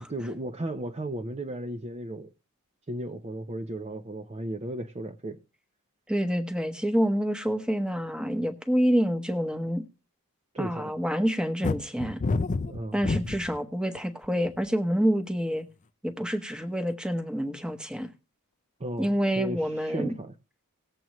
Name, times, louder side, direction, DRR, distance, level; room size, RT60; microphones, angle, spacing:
voice 1, 0.0-2.3 2.9-5.4 10.5-11.0 12.7-13.0 18.8-19.1 19.4-20.3, right 1 dB, 30° right, 0.7 m, -35 dB
voice 2, 6.1-9.8 10.6-12.2 12.9-15.6 16.0-18.1 19.0-20.1, equal, 5° right, 1.1 m, -27 dB
sound 1, 11.6-13.6 14.2-14.7, left 3 dB, 35° left, 0.5 m, -28 dB
18.5 x 7.7 x 3.1 m
head